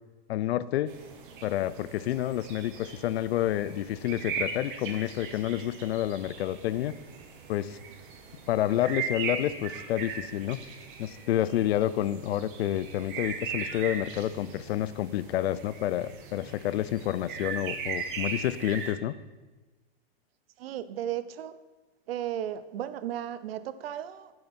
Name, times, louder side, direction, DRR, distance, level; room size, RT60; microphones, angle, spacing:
voice 1, 0.3-0.9 1.4-6.9 7.5-7.8 8.5-10.6 11.0-19.1, left 12 dB, 85° left, 17 dB, 0.5 m, -29 dB
sound 1, 0.9-18.9, right 6 dB, 55° right, 1.4 m, -39 dB
voice 2, 20.6-21.6 22.1-24.3, right 11 dB, 75° right, 15 dB, 0.6 m, -35 dB
10.0 x 6.7 x 4.3 m, 1.2 s
supercardioid pair, 160°, 30 cm